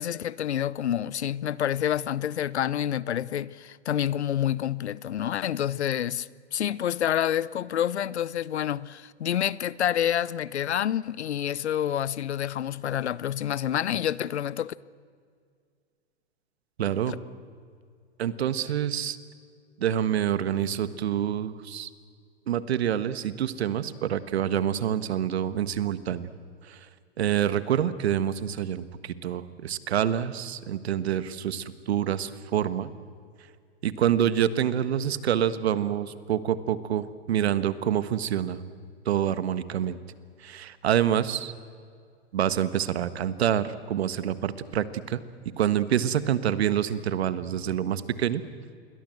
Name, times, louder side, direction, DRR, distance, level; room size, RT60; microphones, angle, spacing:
voice 1, 0.0-14.7 17.1-17.2, left 10 dB, 80° left, 0.8 m, -28 dB
voice 2, 16.8-17.2 18.2-19.2 19.8-21.9 22.5-26.3 26.7-26.8 27.2-32.9 33.8-38.6 39.0-40.0 40.4-41.5 42.3-45.2 45.6-48.4, right 10 dB, 70° right, 1.6 m, -27 dB
28.5 x 22.5 x 7.8 m
hypercardioid pair, 120°, 33 cm